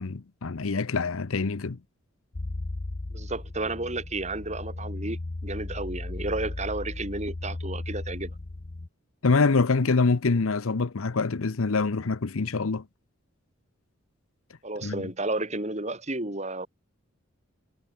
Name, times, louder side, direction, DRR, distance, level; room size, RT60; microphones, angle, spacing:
voice 1, 0.0-1.8 9.2-12.8 14.8-15.0, left 4 dB, 75° left, 0.8 m, -25 dB
sound 1, 2.3-8.9, left 2 dB, 35° left, 0.7 m, -36 dB
voice 2, 3.1-8.3 14.6-16.7, right 2 dB, 30° right, 2.5 m, -32 dB
head